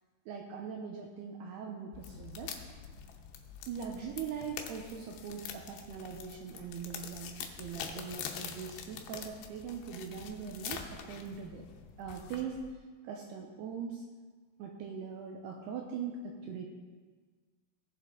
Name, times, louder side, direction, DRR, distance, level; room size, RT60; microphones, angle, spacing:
voice 1, 0.3-2.5 3.7-11.6 12.0-12.6 13.0-14.1 14.6-16.7, right 6 dB, 85° right, 2 dB, 2.4 m, -41 dB
sound 1, 1.9-12.7, left 7 dB, 75° left, 2.7 m, -45 dB
17.5 x 6.6 x 3.8 m, 1.5 s
omnidirectional pair, 5.4 m